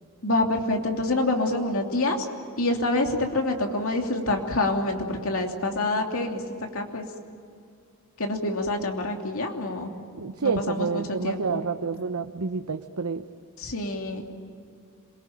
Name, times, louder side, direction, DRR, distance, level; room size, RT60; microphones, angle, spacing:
voice 1, 0.2-2.3 2.6-6.4 6.7-7.0 8.2-9.9 10.4-11.6 13.6-14.2, left 2 dB, 65° left, 2 dB, 2.9 m, -26 dB
voice 2, 10.1-13.2, right 4 dB, 85° right, 8 dB, 0.9 m, -29 dB
27.5 x 23.0 x 8.9 m, 2.4 s
head